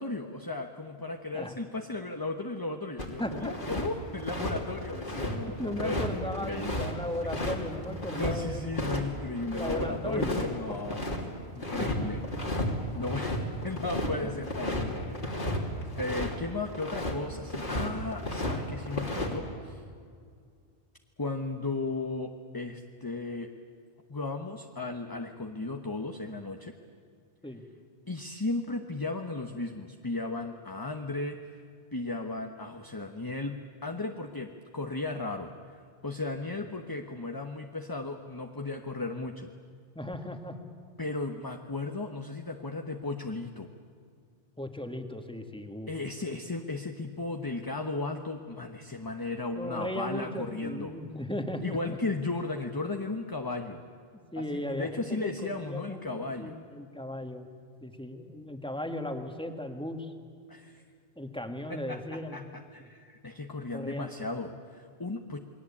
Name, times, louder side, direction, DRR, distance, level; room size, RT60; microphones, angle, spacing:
voice 1, 0.0-6.9 8.2-11.1 11.5-12.2 12.9-15.7 16.0-19.8 21.2-23.5 24.1-26.7 28.1-31.6 31.9-39.5 41.0-43.7 45.9-51.0 51.6-53.8 54.4-56.6 60.5-60.8 61.7-65.4, left 2 dB, 20° left, 4 dB, 1.1 m, -35 dB
sound 1, 3.0-3.9 4.2-8.4 8.7-9.0 9.3-11.2 11.6-12.0 12.2-12.7 13.0-16.4 16.7-17.1 17.5-18.6 18.8-19.3, left 1 dB, 55° left, 3.3 m, -33 dB
voice 2, 3.2-3.5 5.5-8.6 9.5-10.3 11.7-11.9 12.7-12.8 14.0-14.8 27.4-27.6 40.0-40.6 44.6-45.9 49.6-51.8 54.3-57.5 57.8-60.1 61.2-62.4 63.7-64.1, left 1 dB, 5° left, 5 dB, 1.9 m, -37 dB
28.5 x 21.5 x 8.6 m, 2.2 s
omnidirectional pair, 1.0 m